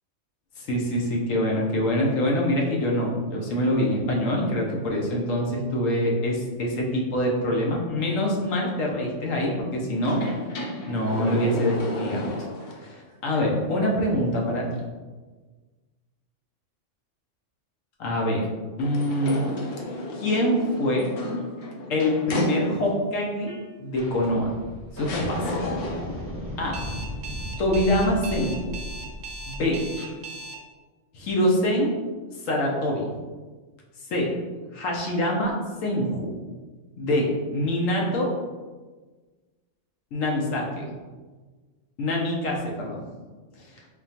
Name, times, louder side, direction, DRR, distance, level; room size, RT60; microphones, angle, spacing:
voice 1, 0.6-10.2 10.9-12.3 12.8-14.8 18.0-18.4 18.8-19.4 20.1-21.1 21.9-24.5 24.9-25.5 26.6-26.8 27.6-28.7 29.5-29.8 31.1-31.9 32.4-33.0 34.1-34.3 34.7-35.5 35.8-36.3 37.0-38.3 40.1-41.0 42.0-43.1, left 1 dB, 85° left, -1 dB, 1.1 m, -25 dB
sound 1, 10.0-12.9 13.3-13.4 18.8-23.1 24.2-24.3 25.0-26.2, left 1 dB, 55° left, 0.7 m, -32 dB
sound 2, 23.5-23.7 24.0-30.2, left 1 dB, 10° left, 0.9 m, -36 dB
Alarm, 26.7-30.5, right 2 dB, 60° right, 0.6 m, -38 dB
4.0 x 3.0 x 2.8 m, 1.3 s
omnidirectional pair, 1.3 m